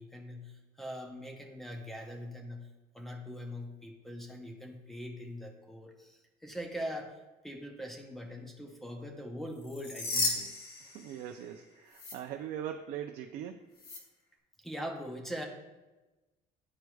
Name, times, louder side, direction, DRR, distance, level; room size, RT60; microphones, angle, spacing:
voice 1, 0.0-2.7 2.9-7.2 7.4-10.5 14.6-15.4, equal, ahead, 2 dB, 0.6 m, -42 dB
sound 1, 9.6-11.6 11.9-12.1 13.8-14.0, left 3 dB, 75° left, 1.4 m, -35 dB
voice 2, 10.8-13.7, right 10 dB, 65° right, 4 dB, 0.4 m, -41 dB
11.0 x 4.6 x 2.3 m, 1.1 s
cardioid pair, 180°, 16 cm